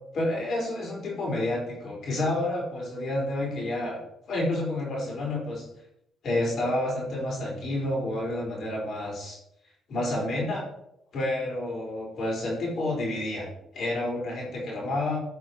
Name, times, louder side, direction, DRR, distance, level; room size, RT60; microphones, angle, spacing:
voice 1, 0.1-4.0 4.3-5.7 6.2-9.4 9.9-10.6 11.1-13.5 13.7-15.2, left 1 dB, 60° left, -3 dB, 4.7 m, -29 dB
12.5 x 6.1 x 4.8 m, 0.80 s
cardioid pair, 90°, 0 cm